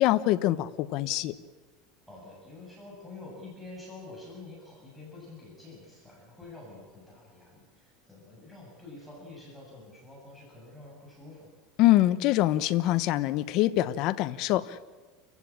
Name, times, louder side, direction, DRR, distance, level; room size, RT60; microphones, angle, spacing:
voice 1, 0.0-1.3 11.8-14.8, left 15 dB, 50° left, 12 dB, 1.0 m, -24 dB
voice 2, 2.1-11.5, left 2 dB, ahead, -4 dB, 7.5 m, -47 dB
29.0 x 15.5 x 8.7 m, 1.3 s
supercardioid pair, 150°, 0 cm